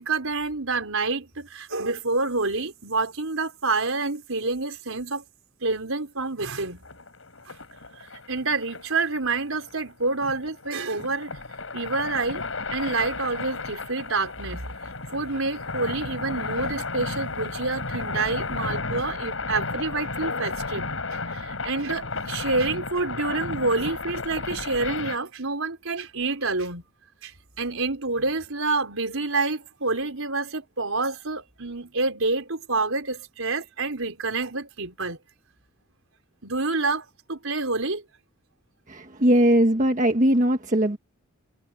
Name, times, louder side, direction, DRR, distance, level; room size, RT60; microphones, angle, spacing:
voice 1, 0.0-5.2 5.6-6.8 7.5-7.6 8.3-11.4 11.7-12.4 12.7-14.7 15.1-26.8 27.2-35.2 36.4-38.0, right 3 dB, 80° right, 4.4 m, -28 dB
sound 1, 6.8-25.2, left 3 dB, 70° left, 5.7 m, -33 dB
voice 2, 38.9-41.0, right 1 dB, 40° right, 1.5 m, -20 dB
head